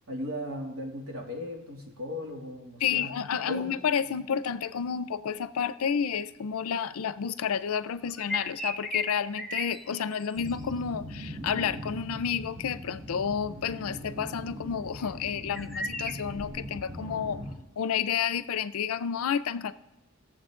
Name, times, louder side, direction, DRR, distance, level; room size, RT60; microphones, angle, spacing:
voice 1, 0.1-3.1 3.4-3.7, equal, 75° right, -1 dB, 2.5 m, -37 dB
voice 2, 2.8-17.4 17.8-19.7, left 7 dB, 90° left, 15 dB, 0.5 m, -30 dB
sound 1, 8.1-10.8 15.0-16.1, left 2 dB, ahead, 0.6 m, -35 dB
sound 2, 10.4-17.5, equal, 45° right, 1.8 m, -40 dB
18.0 x 7.2 x 3.7 m, 0.96 s
head